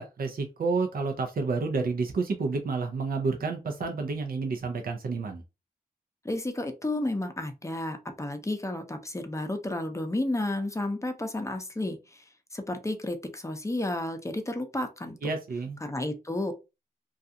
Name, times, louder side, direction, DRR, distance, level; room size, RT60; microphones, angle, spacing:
voice 1, 0.0-5.4 15.2-15.8, right 4 dB, 65° right, 0.5 m, -30 dB
voice 2, 6.2-12.2 12.5-15.3 15.8-16.5, left 1 dB, 20° left, 0.6 m, -32 dB
2.4 x 2.3 x 2.6 m
cardioid pair, 55°, 16 cm